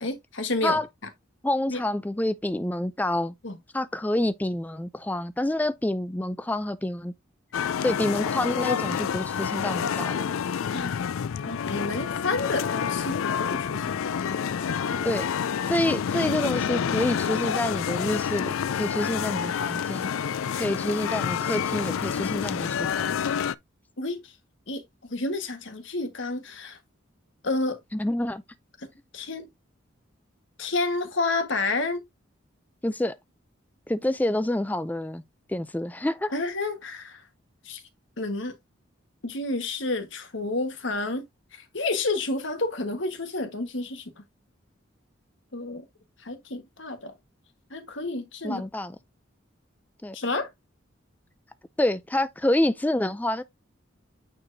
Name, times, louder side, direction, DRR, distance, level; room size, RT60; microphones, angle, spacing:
voice 1, 0.0-0.8 1.7-1.8 3.4-3.6 10.7-11.0 11.4-15.2 20.5-20.7 24.0-24.3 24.7-26.8 27.4-27.8 29.1-29.5 30.6-32.0 36.3-37.2 37.6-37.8 38.2-38.5 39.2-41.2 41.5-44.1 45.5-45.8 46.2-47.1 47.7-48.6 50.1-50.5, left 2 dB, 65° left, 1.5 m, -30 dB
voice 2, 1.4-3.3 3.7-7.1 7.8-10.2 15.0-15.2 15.7-20.1 20.6-23.2 27.9-28.4 32.8-33.1 33.9-35.2 35.5-36.3 48.4-49.0 50.0-50.2 51.8-53.4, left 1 dB, 10° left, 0.3 m, -27 dB
sound 1, 7.5-23.5, left 7 dB, 85° left, 0.4 m, -28 dB
8.7 x 4.6 x 2.7 m
head